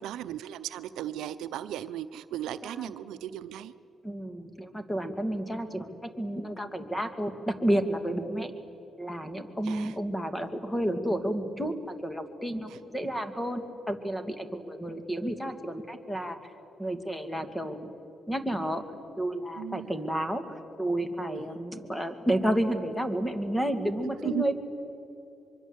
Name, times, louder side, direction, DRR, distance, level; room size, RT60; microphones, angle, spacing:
voice 1, 0.0-3.7 9.6-10.0 12.7-12.8 19.6-20.1 21.3-21.6 24.2-24.4, right 11 dB, 85° right, 13 dB, 0.7 m, -36 dB
voice 2, 4.0-8.5 9.0-16.4 16.8-17.9 18.3-18.8 19.2-24.6, right 1 dB, 10° left, 8 dB, 2.5 m, -31 dB
24.5 x 24.0 x 8.1 m, 2.9 s
cardioid pair, 75°, 0 cm